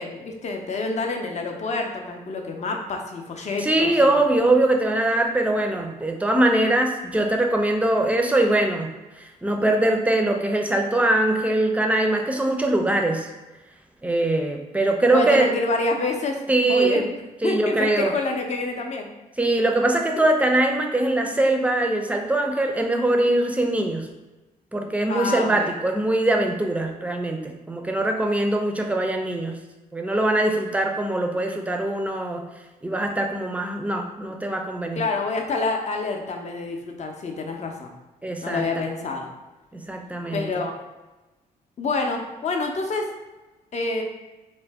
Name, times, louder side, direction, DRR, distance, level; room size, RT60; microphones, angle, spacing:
voice 1, 0.0-4.2 15.1-16.4 16.6-17.0 17.4-19.1 25.1-25.7 35.0-37.9 38.4-39.3 40.3-40.8 41.8-43.1 43.7-44.0, left 3 dB, 45° left, 3 dB, 0.5 m, -27 dB
voice 2, 3.6-13.3 14.0-15.5 16.5-17.0 17.4-18.1 19.4-24.1 24.7-29.6 29.9-32.5 32.8-35.0 38.2-38.7 39.9-40.5, right 2 dB, 10° right, 3 dB, 0.4 m, -22 dB
2.5 x 2.1 x 3.4 m, 1.1 s
supercardioid pair, 65°, 16 cm